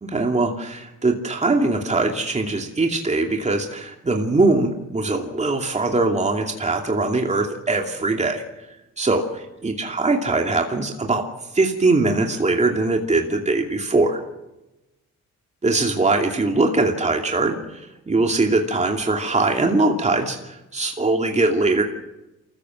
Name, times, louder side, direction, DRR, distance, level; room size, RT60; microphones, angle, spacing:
voice 1, 0.0-8.4 9.0-9.3 9.6-11.3 11.5-14.2 15.6-21.8, right 3 dB, 25° right, 2 dB, 2.7 m, -21 dB
27.0 x 15.0 x 7.6 m, 0.99 s
cardioid pair, 90°, 30 cm